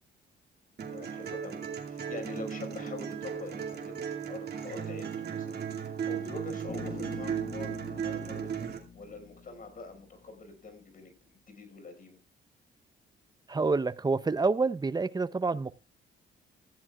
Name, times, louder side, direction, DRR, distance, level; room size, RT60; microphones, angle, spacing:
sound 1, 0.8-8.8, right 7 dB, 55° right, 2.6 m, -36 dB
voice 1, 0.9-12.2, left 3 dB, 45° left, 6 dB, 5.4 m, -45 dB
Bass guitar, 6.7-10.6, left 6 dB, 30° left, 1.8 m, -46 dB
voice 2, 13.5-15.7, right 4 dB, 20° right, 15 dB, 0.7 m, -28 dB
17.0 x 15.0 x 2.4 m, 0.29 s
cardioid pair, 90°, 20 cm